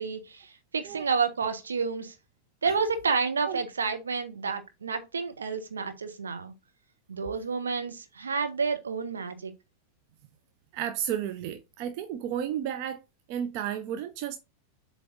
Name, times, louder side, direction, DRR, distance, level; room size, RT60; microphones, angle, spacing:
voice 1, 0.0-2.1 2.6-6.5 7.1-9.5, right 5 dB, 70° right, 1.1 m, -30 dB
voice 2, 10.7-13.0 13.3-14.4, right 9 dB, 45° right, 0.7 m, -32 dB
7.7 x 3.3 x 4.0 m
figure-of-eight pair, 90°, 0 cm